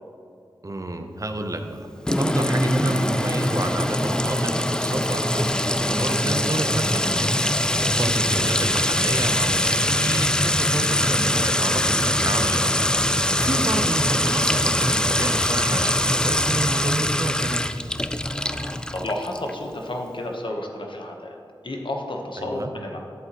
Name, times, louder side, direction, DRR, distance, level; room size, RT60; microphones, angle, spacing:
voice 1, 0.6-1.9 2.2-7.3 7.6-12.7 13.4-17.7 22.4-22.7, right 1 dB, 40° right, 6 dB, 0.7 m, -29 dB
Sink (filling or washing) / Trickle dribble / Fill (with liquid), 2.1-19.5, left 1 dB, 10° left, 0.3 m, -23 dB
voice 2, 18.3-21.4 21.6-23.0, left 1 dB, 65° left, 1 dB, 1.0 m, -32 dB
10.5 x 7.9 x 3.0 m, 2.5 s
cardioid pair, 45°, 9 cm